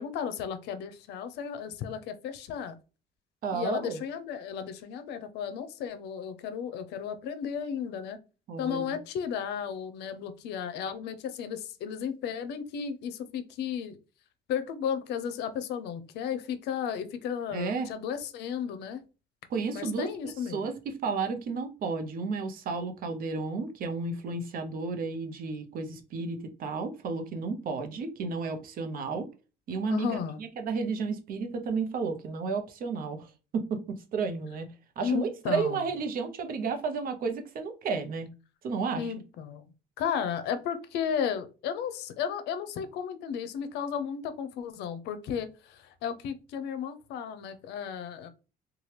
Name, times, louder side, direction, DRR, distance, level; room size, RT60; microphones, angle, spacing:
voice 1, 0.0-2.7 3.5-8.2 8.6-14.0 14.5-19.0 19.7-20.6 29.9-30.4 35.0-35.8 39.0-39.7 40.0-48.3, left 7 dB, 80° left, 10 dB, 0.5 m, -34 dB
voice 2, 3.4-4.0 8.5-9.0 17.5-17.9 19.5-29.3 29.7-34.7 35.0-38.3 38.6-39.1, right 4 dB, 60° right, 6 dB, 0.7 m, -32 dB
2.8 x 2.3 x 3.2 m, 0.32 s
cardioid pair, 110°, 17 cm